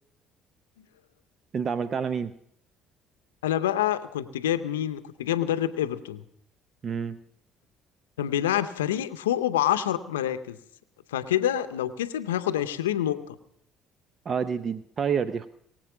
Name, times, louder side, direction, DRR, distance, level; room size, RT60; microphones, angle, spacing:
voice 1, 1.5-2.3 6.8-7.2 14.3-15.5, right 6 dB, 45° right, 13 dB, 0.6 m, -28 dB
voice 2, 3.4-6.2 8.2-10.6 11.1-13.4, left 11 dB, 85° left, 12 dB, 0.6 m, -27 dB
22.0 x 7.7 x 6.0 m, 0.70 s
hypercardioid pair, 55°, 0 cm